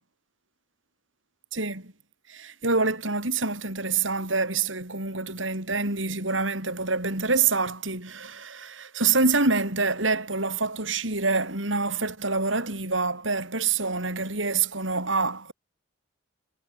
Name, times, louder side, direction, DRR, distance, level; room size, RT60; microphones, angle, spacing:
voice 1, 1.5-1.9 2.3-15.5, right 4 dB, 75° right, 7.9 m, -26 dB
head